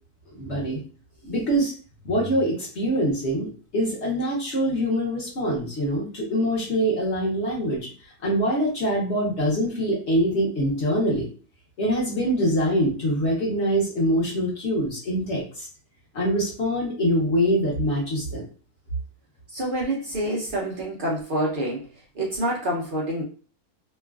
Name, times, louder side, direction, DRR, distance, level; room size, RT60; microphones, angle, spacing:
voice 1, 0.3-0.8 1.2-1.7 2.0-7.9 8.2-11.3 11.8-15.7 16.1-18.4, equal, 50° left, -3 dB, 1.0 m, -24 dB
voice 2, 19.5-23.2, right 1 dB, 65° right, -4 dB, 0.5 m, -27 dB
3.0 x 2.3 x 2.3 m, 0.39 s
omnidirectional pair, 1.7 m